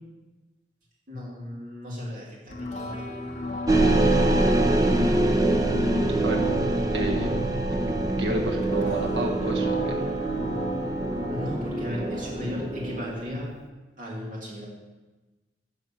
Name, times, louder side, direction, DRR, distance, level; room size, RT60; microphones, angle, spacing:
voice 1, 1.1-3.0 3.8-4.1 11.3-13.5 14.0-14.7, left 1 dB, 45° right, -4 dB, 2.7 m, -36 dB
sound 1, 2.5-12.5, left 1 dB, 40° left, 1.1 m, -35 dB
sound 2, 3.7-13.4, right 2 dB, 20° right, 0.6 m, -25 dB
voice 2, 6.9-7.6 8.1-10.0, right 1 dB, 80° right, 1 dB, 1.4 m, -30 dB
12.0 x 4.2 x 7.5 m, 1.2 s
head